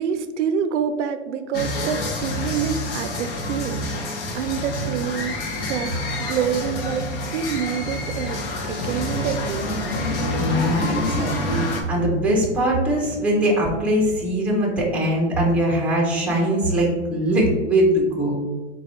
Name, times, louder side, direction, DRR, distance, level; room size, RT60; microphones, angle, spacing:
voice 1, 0.0-10.0, right 7 dB, 80° right, 10 dB, 0.5 m, -27 dB
sound 1, 1.5-11.8, left 1 dB, 50° left, 0.9 m, -27 dB
voice 2, 10.4-18.3, right 1 dB, 5° right, -2 dB, 0.6 m, -21 dB
4.0 x 2.3 x 4.3 m, 1.2 s
hypercardioid pair, 140°, 35 cm